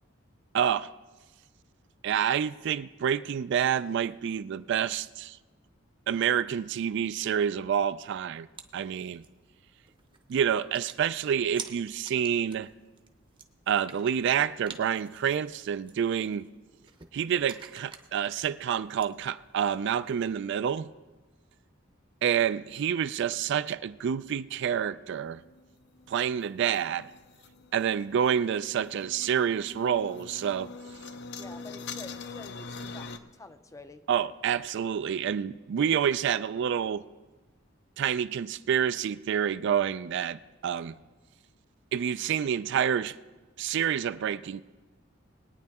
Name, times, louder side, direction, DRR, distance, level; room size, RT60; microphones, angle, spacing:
voice 1, 0.5-0.9 2.0-5.4 6.1-8.5 8.7-9.2 10.3-12.7 13.7-16.4 17.1-20.9 22.2-25.4 26.1-27.1 27.7-30.7 34.1-37.0 38.0-40.9 41.9-43.1 43.6-44.6, right 8 dB, 60° right, 0.3 m, -28 dB
sound 1, 8.6-20.3, right 6 dB, 25° right, 0.8 m, -50 dB
sound 2, 25.2-33.2, left 4 dB, 60° left, 0.6 m, -44 dB
voice 2, 31.4-34.0, left 2 dB, 15° left, 0.5 m, -48 dB
20.5 x 9.2 x 3.5 m
head